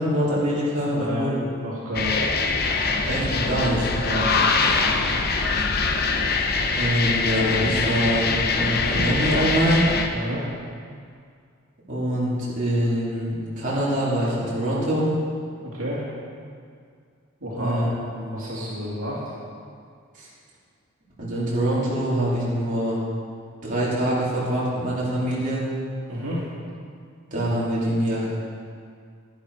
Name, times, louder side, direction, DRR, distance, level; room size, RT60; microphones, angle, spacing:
voice 1, 0.0-1.3 3.0-3.9 6.7-8.3 8.5-9.8 11.9-15.1 17.6-17.9 18.2-18.4 20.1-20.3 21.2-23.0 23.6-25.6 27.3-28.3, right 1 dB, 40° right, -8 dB, 3.3 m, -24 dB
voice 2, 0.8-2.3 4.0-5.3 10.1-10.4 15.6-16.0 17.4-17.8 18.3-19.2 26.1-26.4, equal, 70° right, -7 dB, 2.6 m, -31 dB
sound 1, 1.9-10.1, left 4 dB, 45° left, 0.8 m, -23 dB
11.0 x 10.5 x 4.9 m, 2.2 s
head